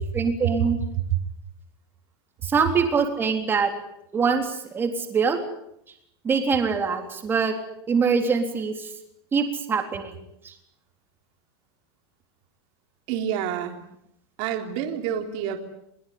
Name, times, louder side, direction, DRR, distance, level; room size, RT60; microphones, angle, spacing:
voice 1, 0.1-0.8 2.4-3.7 4.1-5.4 6.2-7.5 7.9-8.9 9.3-10.2 10.4-10.5, right 5 dB, 15° right, 5 dB, 3.6 m, -23 dB
voice 2, 13.1-13.8 14.4-15.6, right 10 dB, 45° right, 5 dB, 3.5 m, -27 dB
22.5 x 21.0 x 9.7 m, 0.77 s
supercardioid pair, 165°, 14 cm